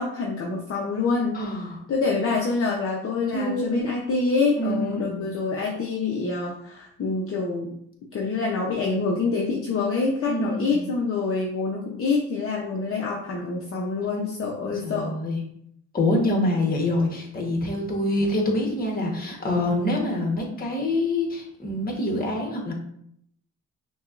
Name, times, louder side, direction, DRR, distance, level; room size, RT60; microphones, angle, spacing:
voice 1, 0.0-1.4 1.9-7.7 8.1-15.1 16.3-16.5, left 4 dB, 45° left, -2 dB, 0.7 m, -26 dB
voice 2, 1.3-1.8 3.3-3.9 4.6-5.3 10.3-10.8 14.7-15.4 15.9-22.7, left 1 dB, 30° left, 0 dB, 1.2 m, -26 dB
5.8 x 2.3 x 2.5 m, 0.71 s
cardioid pair, 90°, 30 cm